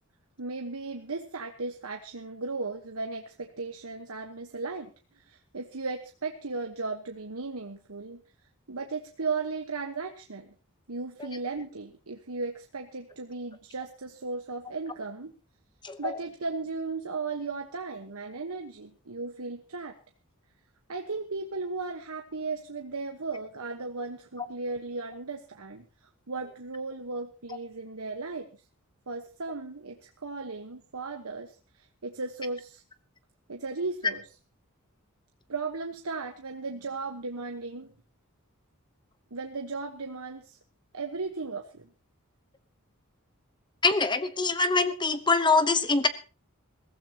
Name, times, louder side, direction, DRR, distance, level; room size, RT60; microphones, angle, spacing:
voice 1, 0.4-8.2 8.7-10.5 10.9-15.3 16.0-20.0 20.9-25.8 26.3-28.5 29.1-32.8 33.5-34.3 35.5-37.9 39.3-40.6 40.9-41.9, right 3 dB, 85° right, 4 dB, 1.3 m, -36 dB
voice 2, 43.8-46.1, left 3 dB, 20° left, 11 dB, 0.9 m, -23 dB
22.0 x 15.5 x 2.9 m, 0.34 s
head